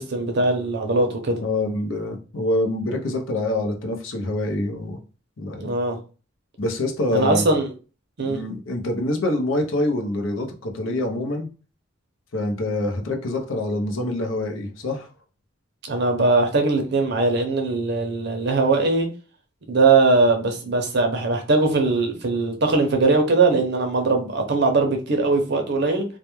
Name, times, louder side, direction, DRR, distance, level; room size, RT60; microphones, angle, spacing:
voice 1, 0.0-1.4 5.6-6.0 7.1-7.7 8.2-8.4 15.8-19.1 19.7-26.1, right 3 dB, 55° right, 0.6 m, -20 dB
voice 2, 1.4-5.0 5.4-5.7 6.6-7.5 8.2-11.5 12.3-15.1, left 1 dB, 70° left, 0.6 m, -25 dB
2.2 x 2.1 x 2.9 m
head